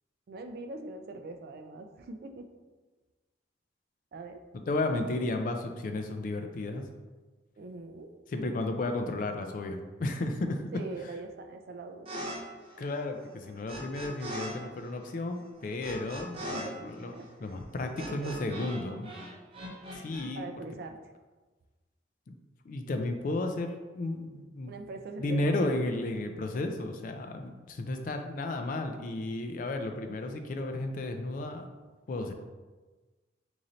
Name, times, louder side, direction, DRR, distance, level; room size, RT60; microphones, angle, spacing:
voice 1, 0.3-2.5 4.1-4.4 7.6-8.1 10.7-12.1 16.5-17.6 18.0-18.4 20.3-21.0 24.7-25.5, right 2 dB, 55° right, 6 dB, 0.3 m, -42 dB
voice 2, 4.5-6.8 8.3-10.6 12.8-17.1 17.4-19.1 19.9-20.5 22.3-22.4 22.7-24.7 25.2-31.7 32.1-32.3, left 2 dB, 45° left, 5 dB, 0.3 m, -33 dB
sound 1, 12.1-12.4 12.6-14.5 14.8-18.8 19.0-20.2, right 1 dB, 30° right, 0.7 m, -41 dB
3.1 x 2.6 x 3.8 m, 1.3 s
head